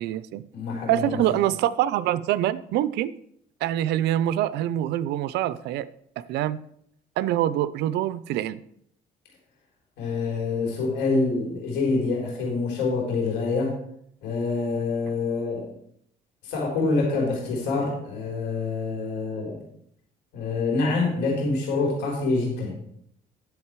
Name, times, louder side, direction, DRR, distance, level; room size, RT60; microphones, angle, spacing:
voice 1, 0.0-0.4 0.9-3.1 3.6-5.9 6.3-6.6 7.2-8.6, right 12 dB, 85° right, 17 dB, 0.6 m, -25 dB
voice 2, 0.5-1.2 10.0-13.8 14.2-15.7 16.4-19.6 20.3-22.8, left 3 dB, 85° left, -2 dB, 3.9 m, -26 dB
10.5 x 7.4 x 4.7 m, 0.68 s
cardioid pair, 110°, 17 cm